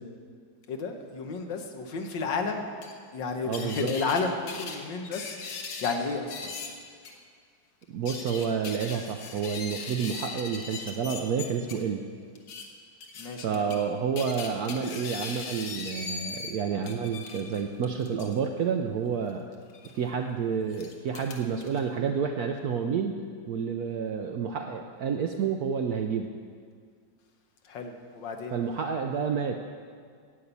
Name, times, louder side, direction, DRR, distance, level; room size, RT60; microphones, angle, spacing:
voice 1, 0.7-2.7 3.1-6.5 13.2-13.9 27.6-28.6, left 4 dB, 70° left, 4 dB, 1.7 m, -32 dB
sound 1, 2.8-2.9 3.5-4.2 4.5-6.0 6.3-6.7 7.0-7.1 7.8-11.7 12.4-12.7 13.0-13.8 14.2-16.5 16.8-18.4 19.7-19.9 20.7-21.8, left 4 dB, 85° left, 2.0 m, -39 dB
voice 2, 3.4-3.9 7.9-12.0 13.4-19.4 19.9-23.2 23.5-26.3 28.5-29.6, right 6 dB, 70° right, 4 dB, 0.9 m, -29 dB
11.0 x 8.5 x 8.1 m, 2.1 s
omnidirectional pair, 2.2 m